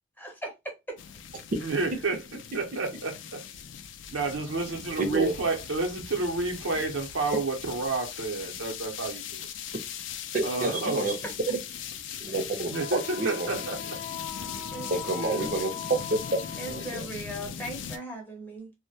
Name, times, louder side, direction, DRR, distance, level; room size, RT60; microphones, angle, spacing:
voice 1, 0.2-1.0 11.2-11.3 14.7-15.0 16.6-18.7, right 1 dB, 10° left, 0.6 m, -38 dB
sound 1, 1.0-18.0, left 8 dB, 70° left, 0.3 m, -40 dB
voice 2, 1.6-2.3 2.5-3.4 4.1-9.5 10.4-11.1 12.7-14.0 15.1-15.6, right 3 dB, 90° right, 0.7 m, -30 dB
voice 3, 5.0-5.3 10.3-11.2 11.5-11.6 12.2-13.5 14.9-16.4 16.7-17.0, right 2 dB, 45° right, 0.5 m, -29 dB
Wind instrument woodwind instrument, 12.7-17.2, left 8 dB, 50° left, 0.7 m, -40 dB
2.2 x 2.1 x 2.7 m
head